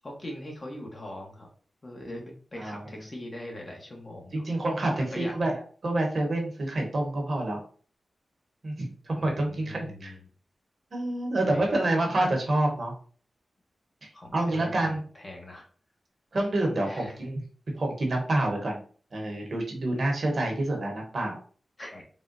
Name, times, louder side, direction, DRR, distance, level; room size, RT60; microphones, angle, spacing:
voice 1, 0.0-1.5 1.8-4.4 5.1-5.3 9.2-10.3 11.5-11.8 14.1-15.7 16.8-17.2 21.8-22.0, left 1 dB, 35° left, 0 dB, 1.0 m, -41 dB
voice 2, 4.3-7.6 8.6-10.1 10.9-12.9 14.0-15.0 16.3-17.4 17.7-18.8 19.1-21.4, right 1 dB, 60° right, 1 dB, 0.9 m, -28 dB
3.5 x 2.2 x 2.5 m, 0.43 s
cardioid pair, 70°, 0 cm